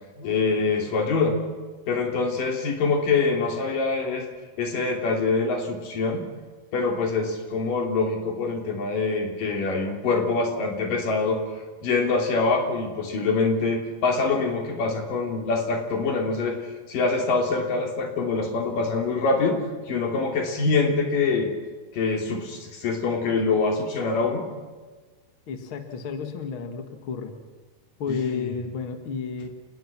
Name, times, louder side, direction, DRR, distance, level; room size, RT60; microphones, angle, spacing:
voice 1, 0.2-1.4 1.9-4.3 4.6-6.2 6.7-11.4 11.8-16.6 16.9-19.6 19.9-21.5 21.9-24.4 28.1-28.5, left 4 dB, 45° left, 2 dB, 4.3 m, -24 dB
voice 2, 25.5-27.3 28.0-29.5, left 5 dB, 80° left, 6 dB, 1.1 m, -31 dB
29.5 x 19.5 x 6.1 m, 1.4 s
omnidirectional pair, 5.7 m